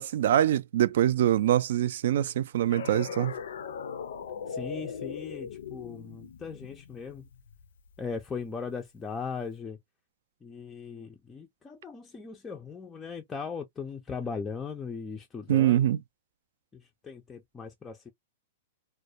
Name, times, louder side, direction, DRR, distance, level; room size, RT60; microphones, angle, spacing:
voice 1, 0.0-3.3 15.5-16.0, right 11 dB, 70° right, 0.3 m, -24 dB
sound 1, 2.7-8.0, left 6 dB, 80° left, 0.4 m, -39 dB
voice 2, 4.5-7.3 8.0-9.8 10.4-15.9 16.7-18.1, left 5 dB, 15° left, 0.4 m, -38 dB
2.2 x 2.1 x 2.6 m
hypercardioid pair, 145°, 0 cm